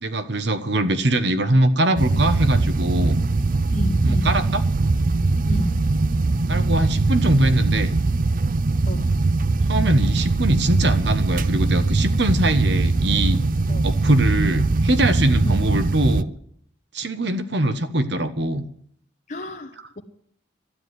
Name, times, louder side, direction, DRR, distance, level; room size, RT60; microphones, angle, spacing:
voice 1, 0.0-3.2 4.0-4.6 6.5-7.9 9.7-13.4 13.8-16.3 16.9-18.6, right 1 dB, 60° right, 11 dB, 1.1 m, -22 dB
sound 1, 2.0-16.2, right 3 dB, 45° right, 0.5 m, -21 dB
voice 2, 3.7-4.4 5.5-5.8 8.9-9.1 13.7-13.9 15.4-15.6 19.3-20.0, left 1 dB, 45° left, 2 dB, 1.2 m, -31 dB
12.5 x 9.9 x 9.5 m, 0.63 s
head